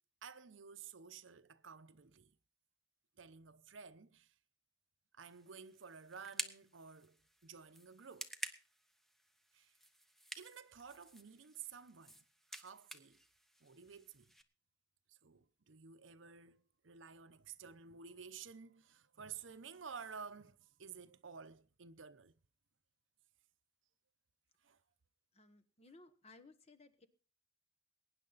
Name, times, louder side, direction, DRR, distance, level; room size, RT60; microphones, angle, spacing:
voice 1, 0.2-2.3 3.2-4.3 5.1-8.3 9.5-9.7 10.4-12.2 12.5-13.2 13.6-14.3 15.1-22.4 24.6-24.8, right 6 dB, 85° right, 0.8 m, -53 dB
sound 1, 5.2-14.4, right 1 dB, ahead, 0.9 m, -51 dB
voice 2, 25.3-27.1, left 3 dB, 35° left, 1.3 m, -61 dB
22.0 x 9.7 x 4.1 m
head